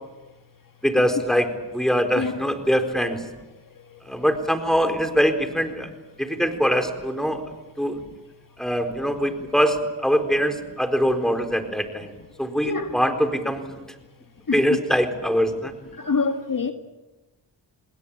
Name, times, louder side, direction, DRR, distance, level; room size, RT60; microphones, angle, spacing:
voice 1, 0.8-3.2 4.0-5.9 6.2-7.4 7.8-8.0 8.6-12.1 12.4-13.8 14.5-15.7, equal, ahead, 4.4 m, -23 dB
voice 2, 14.5-14.8 16.0-16.7, left 4 dB, 45° left, 2.0 m, -25 dB
27.5 x 20.0 x 8.7 m
cardioid pair, 50°, 44 cm